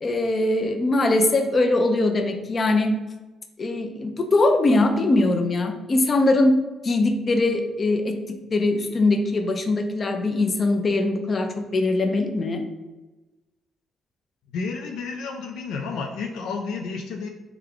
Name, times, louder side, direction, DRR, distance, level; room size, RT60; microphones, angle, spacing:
voice 1, 0.0-2.9 3.6-6.5 6.8-12.6, left 2 dB, 40° left, 5 dB, 0.5 m, -21 dB
voice 2, 14.5-17.3, left 4 dB, 85° left, 3 dB, 0.4 m, -31 dB
3.5 x 3.4 x 3.5 m, 1.1 s
cardioid pair, 90°, 0 cm